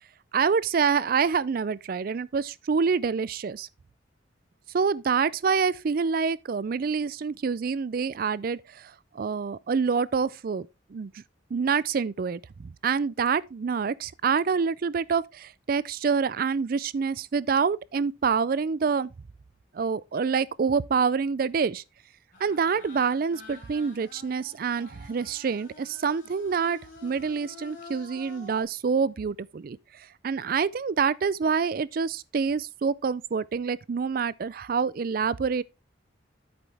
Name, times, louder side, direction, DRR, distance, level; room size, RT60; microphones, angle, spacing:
voice 1, 0.3-3.7 4.7-11.2 11.5-19.1 19.7-21.8 22.4-29.8 30.2-35.6, right 5 dB, 50° right, 0.4 m, -27 dB
sound 1, 22.3-28.6, left 3 dB, 45° left, 3.5 m, -49 dB
8.7 x 7.0 x 3.4 m
head